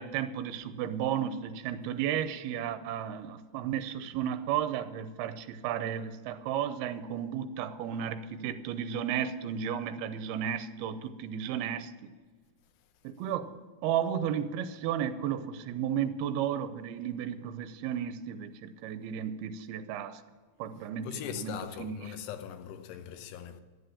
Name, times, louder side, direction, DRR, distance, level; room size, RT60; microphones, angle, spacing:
voice 1, 0.0-11.9 13.0-13.6 13.8-20.2 20.6-21.5 21.8-22.0, right 9 dB, 80° right, 2.5 m, -33 dB
voice 2, 21.0-23.6, left 9 dB, 90° left, 3.0 m, -40 dB
11.5 x 7.9 x 9.9 m
omnidirectional pair, 4.6 m